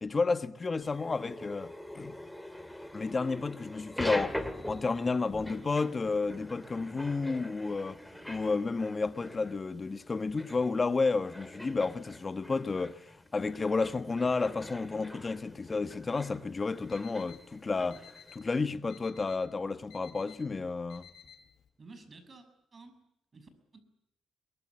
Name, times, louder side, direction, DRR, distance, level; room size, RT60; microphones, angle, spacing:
voice 1, 0.0-2.1 2.9-4.4 4.6-8.0 8.3-13.0 13.3-18.0 18.3-21.0, left 4 dB, 30° left, 1.4 m, -31 dB
sound 1, 0.8-18.3, left 1 dB, 5° left, 2.5 m, -44 dB
voice 2, 5.6-5.9 21.8-22.4 22.7-23.0 23.3-23.8, right 3 dB, 35° right, 6.8 m, -52 dB
Alarm, 16.7-21.7, left 8 dB, 80° left, 7.4 m, -56 dB
23.0 x 22.0 x 8.6 m
cardioid pair, 90°, 0 cm